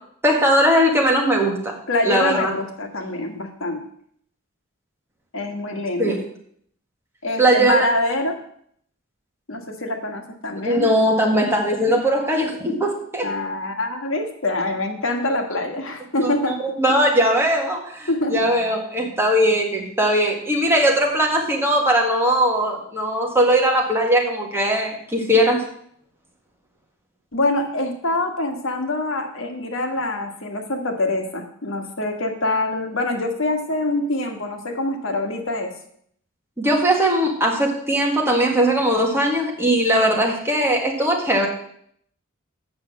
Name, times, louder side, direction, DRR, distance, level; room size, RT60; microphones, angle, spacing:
voice 1, 0.2-1.7 2.0-2.5 6.0-6.2 7.4-7.9 10.6-13.3 16.2-25.6 36.6-41.5, right 1 dB, 10° right, -1 dB, 1.8 m, -19 dB
voice 2, 1.9-3.8 5.3-6.1 7.2-8.4 9.5-10.9 13.2-16.5 18.1-18.3 27.3-35.7, left 2 dB, 75° left, 4 dB, 1.6 m, -25 dB
7.9 x 6.2 x 7.5 m, 0.66 s
head